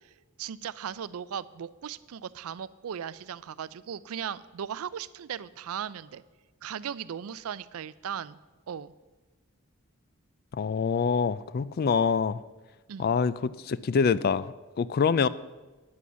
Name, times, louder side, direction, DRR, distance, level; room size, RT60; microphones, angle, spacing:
voice 1, 0.4-6.2 6.6-8.4 8.7-8.9 12.9-13.1, right 8 dB, 75° right, 18 dB, 0.4 m, -37 dB
voice 2, 10.5-12.4 13.0-15.3, left 5 dB, 45° left, 18 dB, 0.3 m, -25 dB
9.5 x 8.5 x 6.8 m, 1.2 s
head